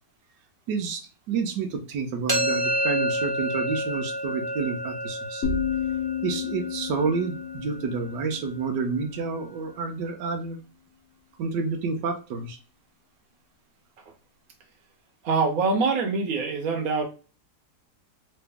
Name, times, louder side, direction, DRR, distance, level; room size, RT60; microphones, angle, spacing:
voice 1, 0.7-1.0 1.3-5.4 6.2-10.6 11.4-12.6, right 5 dB, 90° right, 3 dB, 1.4 m, -29 dB
sound 1, 2.3-8.1, equal, 20° right, 0.8 m, -29 dB
sound 2, 5.4-9.3, left 7 dB, 65° left, 1.2 m, -31 dB
voice 2, 15.2-17.0, right 4 dB, 60° right, 3 dB, 1.3 m, -24 dB
3.4 x 3.0 x 3.4 m, 0.34 s
omnidirectional pair, 1.8 m